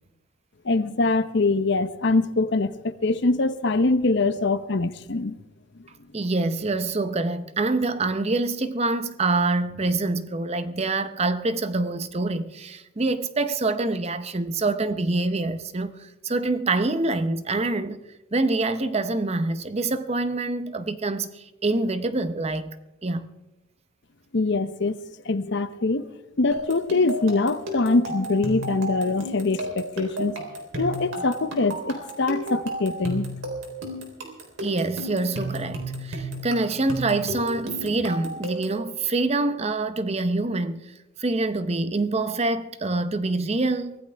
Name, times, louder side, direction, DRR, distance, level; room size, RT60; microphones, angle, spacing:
voice 1, 0.6-5.3 24.3-25.0 25.3-26.1 26.4-30.4 30.8-33.3, left 3 dB, 55° left, 0.7 m, -23 dB
voice 2, 6.1-18.0 18.3-22.8 23.0-23.3 34.6-40.9 41.2-44.0, right 2 dB, 30° right, 0.7 m, -26 dB
sound 1, 26.5-38.8, right 1 dB, 65° right, 3.6 m, -33 dB
24.0 x 15.5 x 3.4 m
head